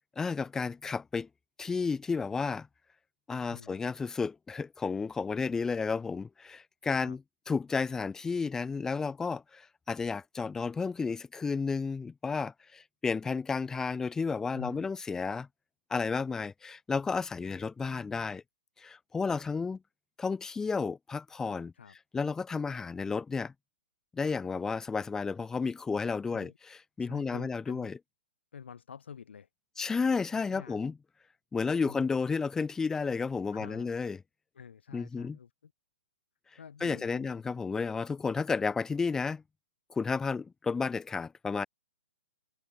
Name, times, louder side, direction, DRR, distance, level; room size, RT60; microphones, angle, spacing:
voice 1, 0.1-1.3 1.6-2.7 3.3-7.2 7.5-15.5 15.9-18.4 18.8-19.8 20.2-21.7 22.1-23.5 24.1-28.0 29.8-30.9 31.5-34.2 34.9-35.4 36.8-39.4 39.9-41.7, left 5 dB, 10° left, 1.6 m, -32 dB
voice 2, 14.5-14.9 21.7-21.9 26.2-26.5 27.0-27.9 28.5-29.5 30.5-30.9 31.8-32.1 33.5-34.0 34.5-35.7 36.6-37.3, left 7 dB, 75° left, 6.3 m, -48 dB
hypercardioid pair, 140°, 6 cm